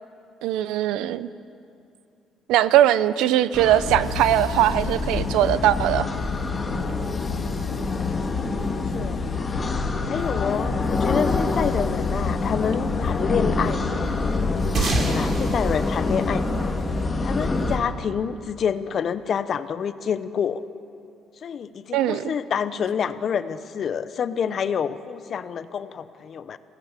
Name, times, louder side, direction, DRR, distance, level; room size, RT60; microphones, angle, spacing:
voice 1, 0.4-1.3 2.5-6.1 21.9-22.3, right 12 dB, 90° right, 15 dB, 0.6 m, -20 dB
sound 1, 3.5-17.8, left 2 dB, 25° left, 1.9 m, -26 dB
sound 2, 3.9-15.1, left 9 dB, 70° left, 1.1 m, -32 dB
voice 2, 7.4-7.7 8.9-9.2 10.1-14.1 14.7-16.4 17.2-20.6 21.4-26.6, left 7 dB, 50° left, 13 dB, 0.8 m, -28 dB
sound 3, 14.7-17.5, right 2 dB, 50° right, 3.0 m, -28 dB
22.5 x 17.0 x 7.4 m, 2.6 s
cardioid pair, 100°, 0 cm